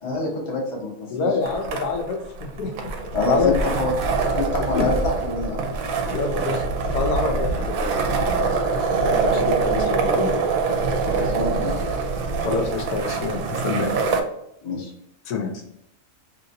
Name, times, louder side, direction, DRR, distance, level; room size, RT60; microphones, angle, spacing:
voice 1, 0.0-1.3 3.1-3.9 4.3-5.6 11.0-11.8 14.6-14.9, left 2 dB, 30° left, -3 dB, 0.6 m, -26 dB
voice 2, 1.1-2.7 3.3-3.7 4.7-4.9 6.1-8.7 9.1-10.4 12.4-13.9 15.3-15.5, left 4 dB, 80° left, 4 dB, 1.2 m, -26 dB
sound 1, 1.4-14.2, right 4 dB, 70° right, 1.0 m, -24 dB
3.1 x 2.8 x 2.6 m, 0.78 s
omnidirectional pair, 1.7 m